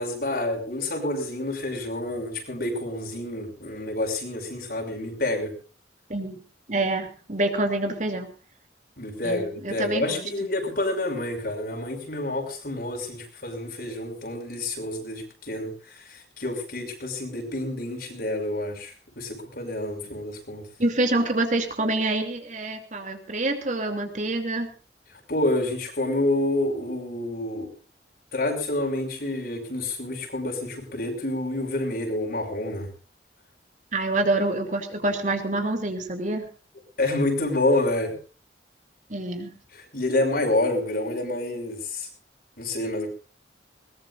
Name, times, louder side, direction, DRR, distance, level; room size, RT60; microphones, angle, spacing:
voice 1, 0.0-5.5 9.0-20.6 25.3-27.7 28.3-32.9 37.0-38.2 39.9-42.1 42.6-43.1, left 2 dB, 60° left, 3 dB, 6.0 m, -28 dB
voice 2, 6.1-6.4 6.7-8.3 9.2-10.2 20.8-24.7 33.9-36.5 39.1-39.5, right 2 dB, 45° right, 5 dB, 3.0 m, -26 dB
21.5 x 20.0 x 2.6 m, 0.36 s
head